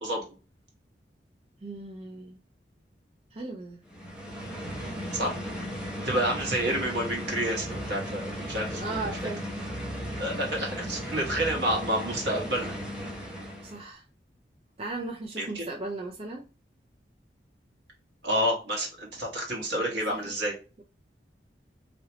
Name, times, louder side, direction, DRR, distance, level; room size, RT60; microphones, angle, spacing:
voice 1, 1.6-2.4 3.3-3.8 6.0-6.1 8.7-9.4 13.6-14.0 14.8-16.4, right 2 dB, 35° right, 0.4 m, -36 dB
sound 1, 3.9-13.9, equal, 5° right, 0.8 m, -36 dB
voice 2, 6.0-9.0 10.2-12.7 15.4-15.6 18.2-20.5, right 1 dB, 70° right, 1.4 m, -29 dB
3.0 x 2.8 x 2.9 m
head